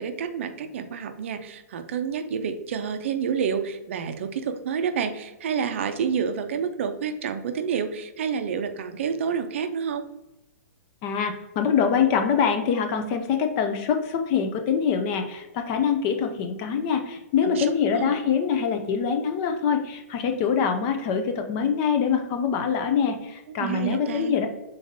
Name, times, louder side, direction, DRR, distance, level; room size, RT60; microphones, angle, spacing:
voice 1, 0.0-10.1 17.4-18.1 23.5-24.3, right 7 dB, 50° right, 8 dB, 0.5 m, -29 dB
voice 2, 11.0-24.5, left 7 dB, 20° left, 6 dB, 0.3 m, -24 dB
5.1 x 3.9 x 2.6 m, 0.98 s
hypercardioid pair, 165°, 9 cm